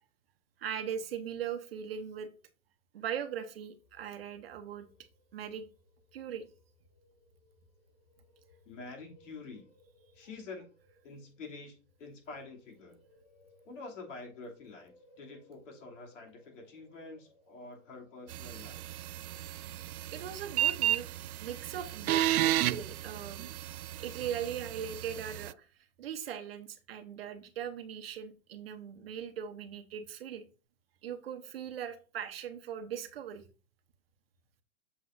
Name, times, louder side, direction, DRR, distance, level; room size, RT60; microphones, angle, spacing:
voice 1, 0.6-2.3 2.9-4.9 5.3-5.6 6.1-6.4 20.1-21.1 21.4-23.5 24.0-25.6 26.0-30.4 31.0-33.4, right 8 dB, 45° right, 7 dB, 0.9 m, -39 dB
sound 1, 3.6-20.6, left 1 dB, 40° left, 4.0 m, -65 dB
voice 2, 8.6-9.7 10.1-10.6 11.0-13.0 13.6-18.8, left 3 dB, 60° left, 0 dB, 3.0 m, -47 dB
sound 2, 18.3-25.5, right 12 dB, 90° right, 0.5 m, -33 dB
7.7 x 6.7 x 2.6 m, 0.36 s
hypercardioid pair, 170°, 42 cm